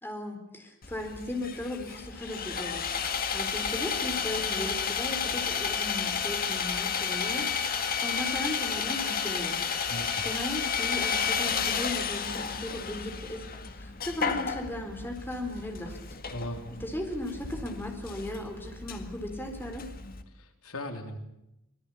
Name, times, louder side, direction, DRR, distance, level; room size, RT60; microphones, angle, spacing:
voice 1, 0.0-7.5 8.0-9.6 10.2-13.5 13.7-16.0 16.7-19.9, left 1 dB, 10° left, 4 dB, 4.0 m, -37 dB
Sawing, 0.8-20.2, left 6 dB, 45° left, 1.9 m, -32 dB
voice 2, 9.9-10.2 16.3-16.7 20.3-21.2, left 1 dB, 85° left, 5 dB, 3.5 m, -38 dB
25.0 x 18.5 x 8.5 m, 0.86 s
head